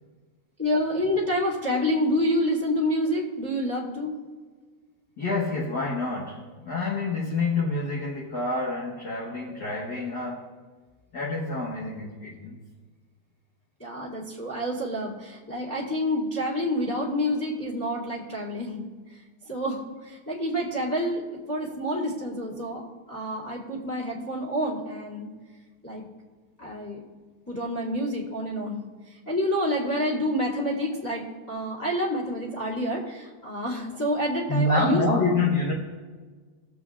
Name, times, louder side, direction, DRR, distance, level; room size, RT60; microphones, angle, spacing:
voice 1, 0.6-4.1 13.8-18.9 19.4-21.2 21.5-25.3 25.8-26.1 26.6-27.0 27.5-28.8 29.3-35.4, equal, 5° left, -7 dB, 1.9 m, -28 dB
voice 2, 5.2-10.5 11.1-12.5 34.5-35.7, left 2 dB, 55° left, -3 dB, 1.2 m, -27 dB
22.5 x 7.9 x 2.4 m, 1.5 s
omnidirectional pair, 3.4 m